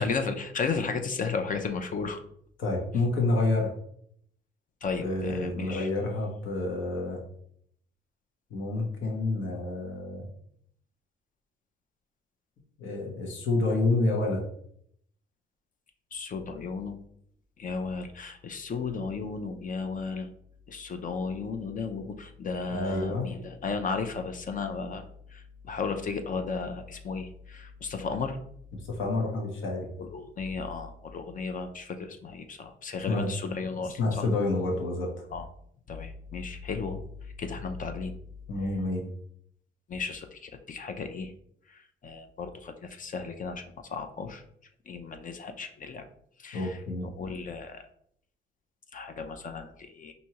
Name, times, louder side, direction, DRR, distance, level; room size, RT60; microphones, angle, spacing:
voice 1, 0.0-2.2 4.8-5.9 16.1-17.0 17.6-20.3 20.7-25.0 25.3-28.4 30.0-34.3 35.3-35.4 35.9-37.0 37.4-38.1 39.9-41.3 41.7-44.4 44.9-46.0 46.4-47.8 48.9-50.1, left 4 dB, 40° left, 6 dB, 0.5 m, -34 dB
voice 2, 2.6-3.7 5.0-7.2 8.5-10.3 12.8-14.4 22.7-23.3 28.9-29.9 33.1-33.3 34.0-35.1 38.5-39.1 46.5-47.1, left 2 dB, 75° left, 0 dB, 1.1 m, -28 dB
4.3 x 2.7 x 2.9 m, 0.68 s
cardioid pair, 90°, 20 cm